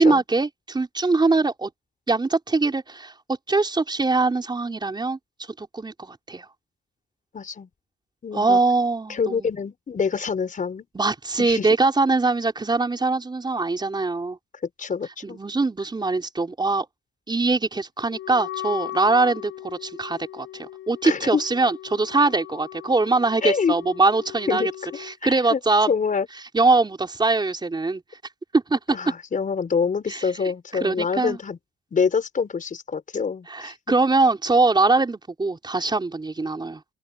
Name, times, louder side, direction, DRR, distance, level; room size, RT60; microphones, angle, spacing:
voice 1, 0.0-1.7 2.1-3.1 3.5-5.2 5.6-6.5 8.3-9.5 10.9-14.4 15.2-16.9 17.3-24.7 25.0-25.9 26.5-28.0 28.5-28.8 30.1-30.2 30.8-31.4 33.5-36.8, right 3 dB, 20° right, 4.6 m, -22 dB
voice 2, 7.3-7.7 8.2-8.6 9.1-10.9 11.4-11.7 14.8-15.4 21.0-21.4 23.4-23.7 24.5-24.7 25.2-25.6 25.9-26.3 28.9-31.6 31.9-33.7, left 5 dB, 40° left, 5.4 m, -26 dB
Wind instrument woodwind instrument, 18.1-25.2, left 13 dB, 80° left, 7.8 m, -38 dB
open air
cardioid pair, 90°, 20 cm